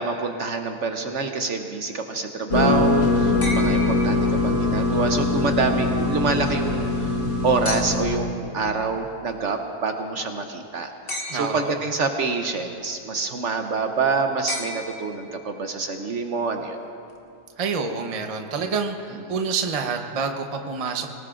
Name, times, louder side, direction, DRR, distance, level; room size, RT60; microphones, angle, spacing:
voice 1, 0.0-7.1 7.4-10.9 11.3-16.8, right 4 dB, 55° right, 5 dB, 1.0 m, -26 dB
sound 1, 2.5-8.0, left 2 dB, 90° left, 2.8 m, -22 dB
sound 2, 3.4-4.8 7.6-8.3 11.1-11.9 14.5-15.5 17.1-17.2, left 1 dB, 40° left, 1.6 m, -34 dB
voice 2, 11.3-11.8 17.6-21.1, right 5 dB, 30° right, 4 dB, 0.7 m, -27 dB
24.0 x 18.5 x 2.5 m, 2.5 s
omnidirectional pair, 1.7 m